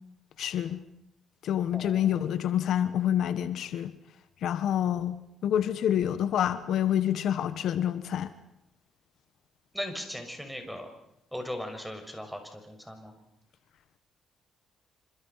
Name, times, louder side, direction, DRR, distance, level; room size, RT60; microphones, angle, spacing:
voice 1, 0.4-0.8 1.4-3.9 4.4-8.3, left 10 dB, 75° left, 12 dB, 1.4 m, -27 dB
voice 2, 1.7-2.2 9.7-10.9 11.3-13.1, equal, ahead, 6 dB, 6.4 m, -38 dB
28.0 x 26.5 x 5.8 m, 0.80 s
cardioid pair, 90°, 0 cm